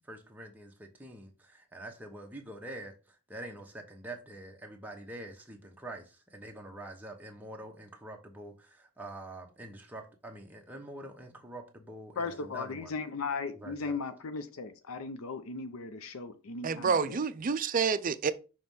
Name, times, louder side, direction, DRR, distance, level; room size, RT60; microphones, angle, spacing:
voice 1, 0.1-0.7 1.0-1.3 1.7-2.9 3.3-6.0 6.3-8.5 9.0-12.2 12.5-12.9 13.6-13.9, right 1 dB, 10° right, 1.0 m, -45 dB
voice 2, 12.2-17.2, left 4 dB, 70° left, 0.6 m, -37 dB
voice 3, 16.6-18.3, right 5 dB, 40° right, 0.4 m, -28 dB
6.0 x 3.2 x 5.4 m
head